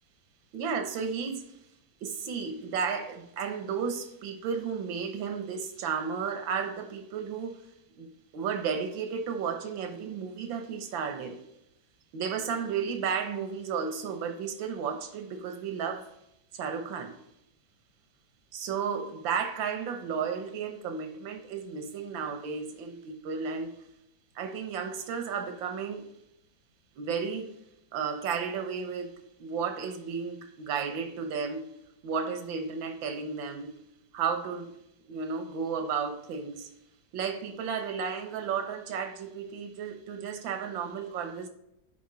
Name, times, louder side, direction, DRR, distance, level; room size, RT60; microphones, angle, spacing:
voice 1, 0.5-1.6 2.0-7.6 8.0-11.4 12.1-16.1 16.5-17.1 18.5-23.7 24.3-26.1 27.0-27.5 27.9-31.6 32.0-33.7 34.1-34.7 35.1-36.7 37.1-41.5, right 6 dB, 85° right, 1.7 m, -33 dB
9.4 x 3.8 x 3.8 m
omnidirectional pair, 2.0 m